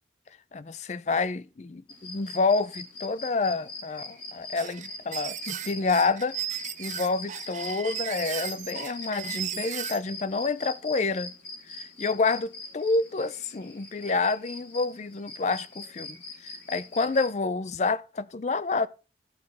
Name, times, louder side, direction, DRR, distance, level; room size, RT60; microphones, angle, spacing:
voice 1, 0.5-11.3 11.7-16.2 16.4-18.9, left 3 dB, 40° left, 0.4 m, -28 dB
sound 1, 1.9-17.3, left 3 dB, 90° left, 4.7 m, -42 dB
sound 2, 4.5-10.0, right 10 dB, 40° right, 0.5 m, -36 dB
14.5 x 4.9 x 4.7 m
head